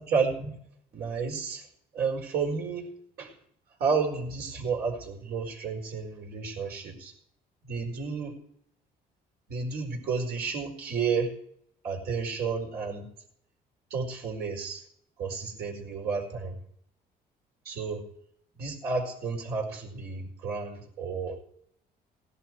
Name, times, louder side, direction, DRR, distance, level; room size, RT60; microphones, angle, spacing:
voice 1, 0.1-0.6 0.9-1.7 1.9-2.8 3.2-3.3 3.8-7.1 7.7-8.4 9.5-11.3 11.8-13.1 13.9-14.8 15.2-16.6 17.6-18.0 18.6-21.4, right 5 dB, 65° right, 1 dB, 4.8 m, -31 dB
17.0 x 11.0 x 4.7 m, 0.69 s
cardioid pair, 110°, 17 cm